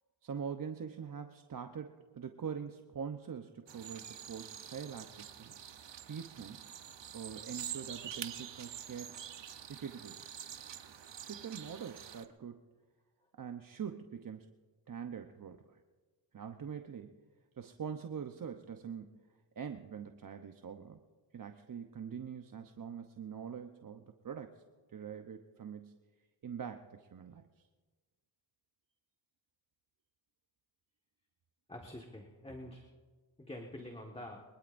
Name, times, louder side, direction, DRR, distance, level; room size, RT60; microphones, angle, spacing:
voice 1, 0.2-5.6 6.0-6.7 7.1-9.3 9.7-10.2 11.2-12.6 13.4-14.5 14.9-15.8 16.3-17.2 17.6-19.2 19.6-21.0 21.3-24.6 24.9-26.0 26.4-27.5, right 7 dB, 45° right, 6 dB, 0.9 m, -44 dB
sound 1, 3.7-12.3, right 9 dB, 70° right, 1.0 m, -47 dB
voice 2, 31.7-32.8 33.4-34.4, left 1 dB, 15° left, 1 dB, 1.6 m, -46 dB
23.0 x 21.0 x 2.6 m, 1.4 s
cardioid pair, 65°, 45 cm